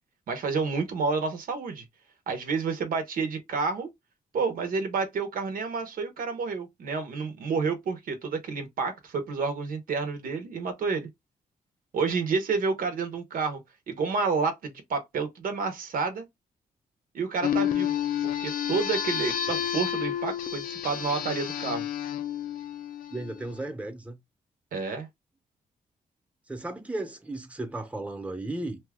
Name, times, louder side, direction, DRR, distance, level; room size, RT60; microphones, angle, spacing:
voice 1, 0.3-1.8 2.3-3.9 4.3-11.1 11.9-13.6 13.9-16.3 17.1-18.0 18.2-21.8 24.7-25.1, right 4 dB, 75° right, 0.8 m, -29 dB
sound 1, 17.4-23.4, left 9 dB, 75° left, 0.5 m, -30 dB
voice 2, 23.1-24.2 26.5-28.8, right 2 dB, 10° right, 0.8 m, -35 dB
2.7 x 2.3 x 3.5 m
cardioid pair, 70°, 15 cm